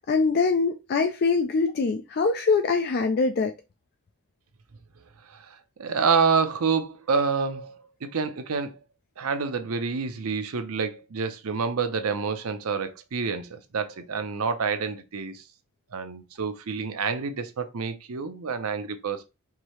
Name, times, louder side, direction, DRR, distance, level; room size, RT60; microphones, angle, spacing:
voice 1, 0.1-3.5, left 4 dB, 45° left, 0.3 m, -23 dB
voice 2, 5.3-7.7 8.0-8.8 9.2-15.4 15.9-19.3, right 5 dB, 75° right, 0.6 m, -28 dB
4.7 x 2.7 x 3.0 m
head